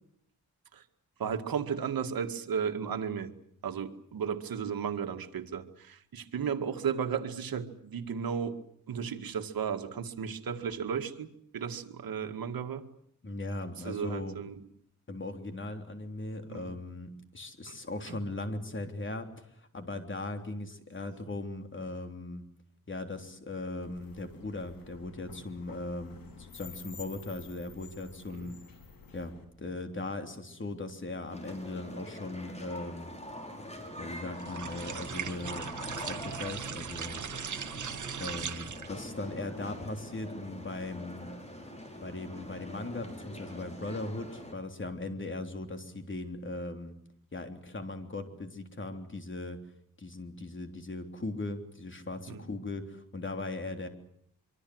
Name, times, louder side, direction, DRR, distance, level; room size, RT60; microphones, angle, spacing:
voice 1, 1.2-3.3 3.6-12.8 13.8-14.6 16.5-16.7 17.7-17.8 18.1-18.2 28.3-28.5 52.3-52.4, right 7 dB, 80° right, 7 dB, 2.1 m, -34 dB
voice 2, 13.2-14.4 15.1-22.4 22.9-28.6 29.1-29.3 29.6-33.1 34.0-35.7 36.0-37.2 38.2-41.3 42.0-46.9 47.3-49.6 50.0-53.9, left 2 dB, 35° left, 6 dB, 3.5 m, -39 dB
sound 1, 23.8-29.4, left 5 dB, 75° left, 4.4 m, -51 dB
sound 2, 31.3-44.5, left 1 dB, 20° left, 5.9 m, -44 dB
sound 3, 34.4-39.0, right 7 dB, 55° right, 1.6 m, -39 dB
25.0 x 24.5 x 7.9 m, 0.67 s
wide cardioid pair, 105°, 35 cm